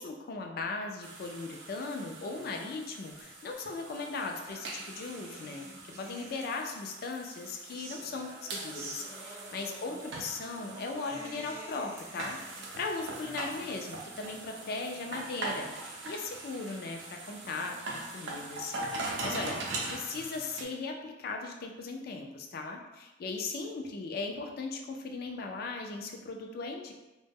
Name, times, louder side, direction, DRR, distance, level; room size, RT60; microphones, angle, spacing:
voice 1, 0.0-19.6 19.9-26.9, left 3 dB, 55° left, 3 dB, 0.3 m, -38 dB
sound 1, 1.0-20.6, right 2 dB, 75° right, 0.4 m, -42 dB
sound 2, 3.9-6.8 7.3-18.8, right 1 dB, 15° right, 0.4 m, -51 dB
2.1 x 2.0 x 3.4 m, 1.0 s
head